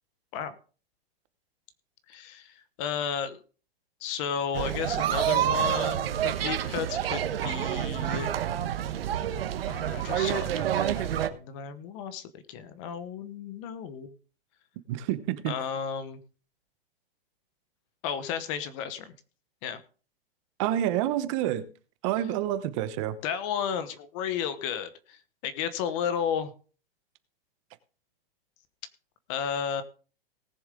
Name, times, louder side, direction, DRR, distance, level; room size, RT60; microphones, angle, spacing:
voice 1, 2.1-3.4 4.0-8.3 9.7-14.1 15.5-16.2 18.0-19.1 19.6-19.8 23.2-25.2 25.4-26.5 29.3-29.8, left 8 dB, 30° left, 13 dB, 1.1 m, -33 dB
sound 1, 4.5-11.3, right 10 dB, 70° right, 1.3 m, -28 dB
voice 2, 14.9-15.5 20.6-21.6 22.0-23.1, right 12 dB, 30° right, 13 dB, 1.0 m, -28 dB
19.0 x 7.0 x 3.8 m, 0.38 s
hypercardioid pair, 155°, 30 cm